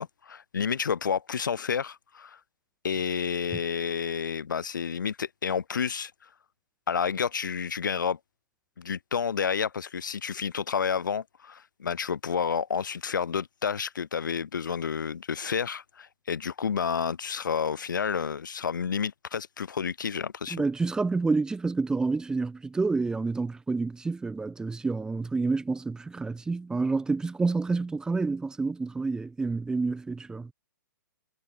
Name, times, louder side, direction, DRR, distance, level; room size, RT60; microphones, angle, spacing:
voice 1, 0.0-2.4 2.8-6.1 6.9-8.2 8.8-20.6, left 7 dB, 75° left, 0.9 m, -30 dB
voice 2, 20.5-30.5, right 3 dB, 5° right, 0.7 m, -28 dB
hypercardioid pair, 125°, 10 cm